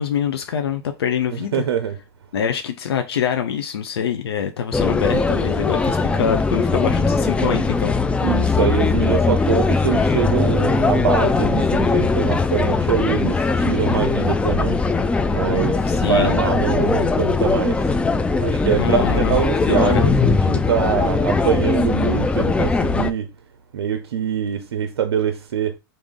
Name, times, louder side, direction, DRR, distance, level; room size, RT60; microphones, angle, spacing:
voice 1, 0.0-1.6 2.3-7.9 15.9-16.3 18.8-20.0, left 8 dB, 75° left, 0.5 m, -24 dB
voice 2, 1.3-2.0 8.2-14.8 15.3-18.0 18.4-23.3 23.7-25.8, right 8 dB, 75° right, 0.5 m, -24 dB
sound 1, 4.7-23.1, left 4 dB, 10° left, 0.3 m, -20 dB
3.5 x 2.5 x 3.6 m
hypercardioid pair, 105°, 13 cm